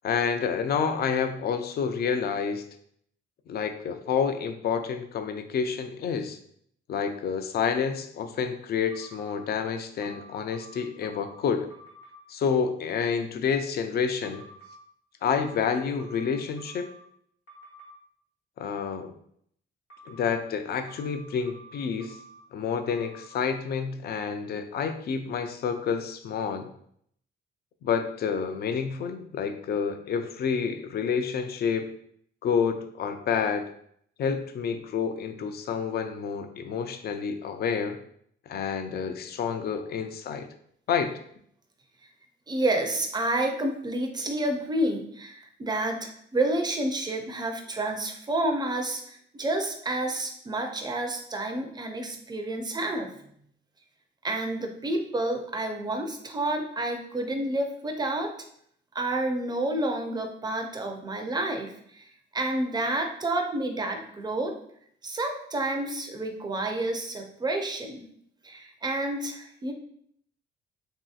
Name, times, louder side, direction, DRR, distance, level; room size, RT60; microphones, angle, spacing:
voice 1, 0.0-2.6 3.5-6.4 6.9-11.7 12.3-14.4 15.2-16.9 18.6-19.1 20.1-22.2 22.5-26.7 27.8-31.9 32.4-33.6 34.2-38.0 38.5-40.5 40.9-41.2, left 6 dB, 50° left, 8 dB, 0.4 m, -29 dB
sound 1, 8.9-9.4 10.0-11.4 11.7-12.2 14.2-14.8 15.4-17.0 17.5-17.9 19.9-20.4 20.9-22.4 22.9-23.3, right 3 dB, 70° left, 1.0 m, -50 dB
voice 2, 42.5-53.1 54.2-58.3 58.9-62.0 62.3-64.5 65.0-68.0 68.4-69.7, right 1 dB, 20° right, 3 dB, 0.5 m, -29 dB
3.0 x 2.7 x 2.4 m, 0.67 s
cardioid pair, 90°, 20 cm